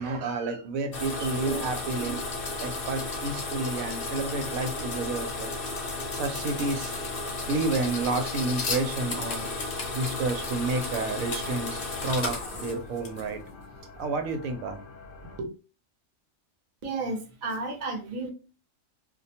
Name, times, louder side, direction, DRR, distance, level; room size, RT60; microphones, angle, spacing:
voice 1, 0.0-2.2 2.6-5.5 6.1-7.0 7.5-9.5 9.9-13.4 14.0-14.8 15.4-15.5, right 3 dB, 90° right, 6 dB, 1.0 m, -30 dB
sound 1, 0.9-13.5, left 3 dB, 55° left, 0.7 m, -33 dB
sound 2, 9.0-15.4, left 3 dB, 75° left, 1.0 m, -48 dB
voice 2, 16.8-18.3, right 3 dB, 45° right, 2 dB, 0.6 m, -32 dB
2.4 x 2.1 x 2.7 m, 0.32 s
omnidirectional pair, 1.4 m